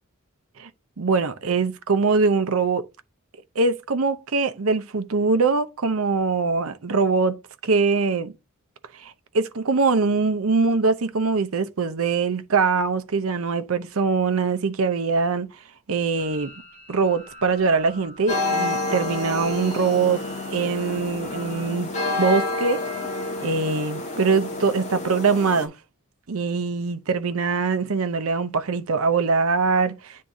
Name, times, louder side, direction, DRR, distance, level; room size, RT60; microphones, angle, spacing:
voice 1, 1.0-2.9 3.6-8.3 8.9-15.5 15.9-16.5 16.9-20.2 20.5-21.9 22.2-22.8 23.4-25.7 26.3-30.2, right 4 dB, 70° right, 0.7 m, -23 dB
sound 1, 16.2-21.8, right 1 dB, 35° right, 2.0 m, -47 dB
sound 2, 18.3-25.7, left 2 dB, 35° left, 1.7 m, -29 dB
9.6 x 3.7 x 2.7 m
head